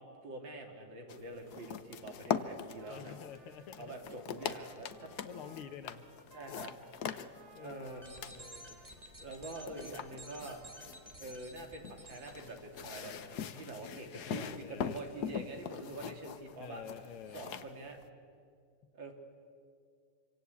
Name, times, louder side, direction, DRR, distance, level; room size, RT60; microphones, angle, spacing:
voice 1, 0.0-3.1 3.8-5.1 6.3-6.7 7.6-8.0 9.2-10.6 11.2-16.8 17.3-18.0 18.9-19.1, right 2 dB, 60° right, 3 dB, 3.6 m, -45 dB
sound 1, 1.1-18.1, left 8 dB, 55° left, 1.3 m, -43 dB
Trumpet, 2.8-11.3, right 3 dB, 80° right, 2.9 m, -62 dB
voice 2, 2.9-3.9 5.2-6.1 7.5-8.8 14.1-15.5 16.6-17.5, left 8 dB, 80° left, 8 dB, 1.9 m, -49 dB
sound 2, 8.0-13.0, right 1 dB, 20° right, 2.3 m, -53 dB
25.5 x 25.5 x 8.4 m, 2.2 s
omnidirectional pair, 2.4 m